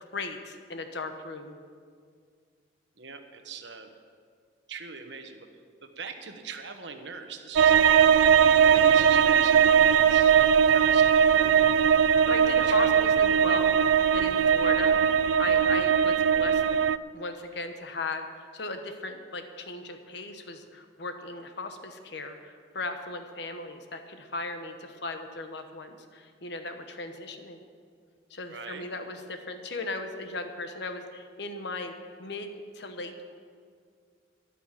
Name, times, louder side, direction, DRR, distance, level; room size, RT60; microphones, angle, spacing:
voice 1, 0.1-1.6 7.7-7.8 12.3-15.0 15.4-16.6 17.1-18.3 18.5-27.6 28.3-31.9 32.2-33.3, left 3 dB, 65° left, 7 dB, 1.1 m, -37 dB
voice 2, 3.0-4.0 4.7-5.5 5.8-11.7 12.4-13.2 28.5-28.9, right 5 dB, 70° right, 6 dB, 1.2 m, -42 dB
sound 1, 7.6-17.0, right 7 dB, 85° right, 0.3 m, -20 dB
13.5 x 11.5 x 5.8 m, 2.1 s
head